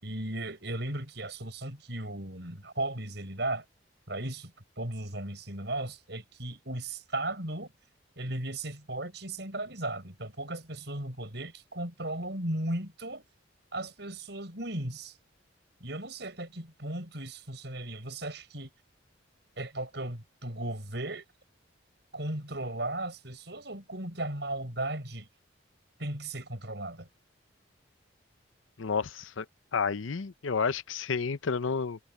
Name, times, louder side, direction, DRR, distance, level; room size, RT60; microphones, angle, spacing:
voice 1, 0.0-3.6 4.1-7.7 8.2-13.2 13.7-15.2 15.8-18.7 19.6-21.2 22.1-25.3 26.0-27.1, right 1 dB, 60° right, 6.4 m, -36 dB
voice 2, 28.8-29.5 29.7-32.0, left 5 dB, 90° left, 0.7 m, -30 dB
head